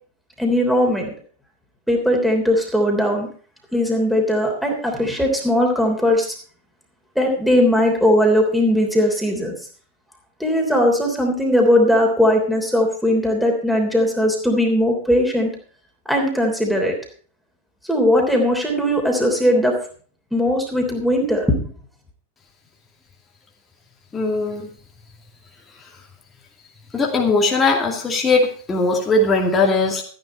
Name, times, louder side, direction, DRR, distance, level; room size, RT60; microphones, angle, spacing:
voice 1, 0.4-1.1 1.9-3.3 3.7-6.3 7.1-9.5 10.4-15.5 16.1-16.9 17.8-19.7 20.3-21.7, equal, ahead, 1 dB, 3.2 m, -19 dB
voice 2, 24.1-24.7 26.9-30.0, left 3 dB, 15° left, 0 dB, 2.4 m, -19 dB
14.0 x 10.5 x 4.3 m, 0.43 s
figure-of-eight pair, 90°, 0 cm